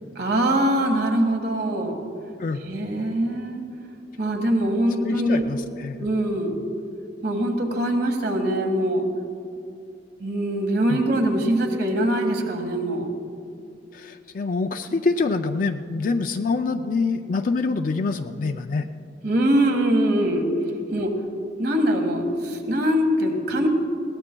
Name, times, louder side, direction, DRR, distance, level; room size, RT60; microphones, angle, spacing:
voice 1, 0.2-2.0 2.6-3.6 4.2-5.5 6.0-6.6 7.2-9.0 10.2-13.1 19.2-20.5 20.9-21.1 21.6-23.7, right 1 dB, 60° right, 3 dB, 1.7 m, -23 dB
voice 2, 5.0-6.1 10.9-11.0 13.9-18.8, left 4 dB, 50° left, 6 dB, 0.4 m, -25 dB
21.0 x 17.5 x 2.3 m, 2.5 s
head